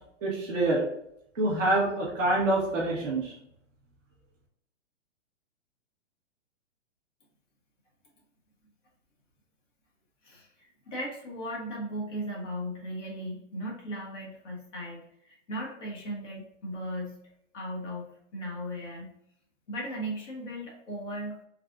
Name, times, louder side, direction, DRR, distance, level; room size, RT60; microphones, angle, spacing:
voice 1, 0.2-0.8 1.3-3.3, right 2 dB, 10° right, -13 dB, 0.3 m, -26 dB
voice 2, 10.2-17.2 17.5-19.1 19.7-21.4, equal, 70° left, -3 dB, 1.2 m, -37 dB
3.2 x 2.4 x 3.6 m, 0.74 s
hypercardioid pair, 155°, 37 cm